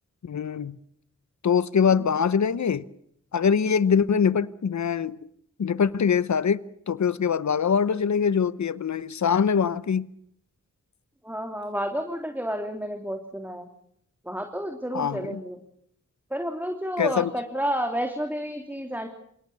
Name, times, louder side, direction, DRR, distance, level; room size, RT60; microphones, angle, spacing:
voice 1, 0.2-0.8 1.4-2.8 3.3-5.2 5.6-6.6 6.9-10.1 14.9-15.4 17.0-17.3, left 7 dB, 70° left, 0.9 m, -23 dB
voice 2, 11.2-13.7 14.2-15.6 16.3-19.1, equal, 5° right, 3.1 m, -30 dB
27.5 x 18.0 x 7.0 m
cardioid pair, 40°, 30 cm